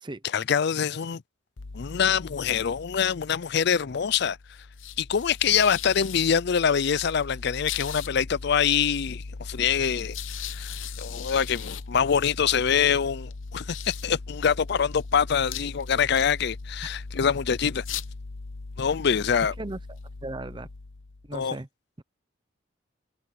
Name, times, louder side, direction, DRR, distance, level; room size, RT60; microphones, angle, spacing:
voice 1, 0.3-1.2 1.7-4.4 5.0-10.2 10.5-17.8 18.8-19.5 21.3-21.6, left 7 dB, 55° left, 0.5 m, -25 dB
sound 1, 1.6-21.5, left 5 dB, 75° left, 0.8 m, -39 dB
voice 2, 20.2-20.7 21.3-21.7 22.0-22.1, right 2 dB, 25° right, 0.7 m, -36 dB
head